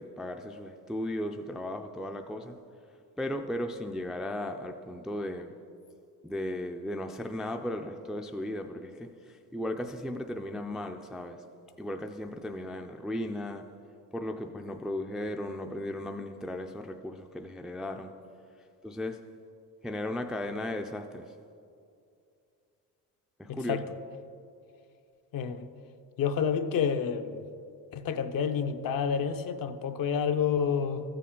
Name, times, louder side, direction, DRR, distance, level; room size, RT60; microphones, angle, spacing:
voice 1, 0.0-2.6 3.2-5.5 6.2-11.4 11.8-13.6 14.1-18.1 18.8-19.2 19.8-21.3 23.4-23.8, left 1 dB, ahead, 5 dB, 0.3 m, -36 dB
voice 2, 23.5-23.8 25.3-25.7 26.2-27.4 27.9-31.0, left 7 dB, 65° left, 8 dB, 0.7 m, -29 dB
14.0 x 6.8 x 3.7 m, 2.5 s
cardioid pair, 110°, 37 cm